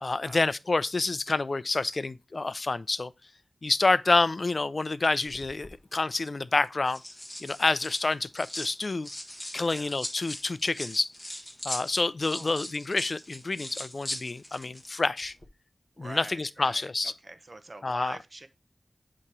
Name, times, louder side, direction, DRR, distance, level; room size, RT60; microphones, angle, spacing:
voice 1, 0.0-3.1 3.6-7.0 7.4-9.1 9.5-11.1 11.6-15.3 16.0-17.1 17.8-18.2, left 3 dB, 50° left, 0.4 m, -28 dB
sound 1, 5.3-5.8 6.6-8.7 9.0-14.9 15.2-15.5, left 1 dB, 20° left, 1.4 m, -40 dB
voice 2, 12.2-12.7 16.0-18.5, right 2 dB, 40° right, 0.8 m, -44 dB
8.5 x 3.0 x 4.7 m
wide cardioid pair, 90°, 0 cm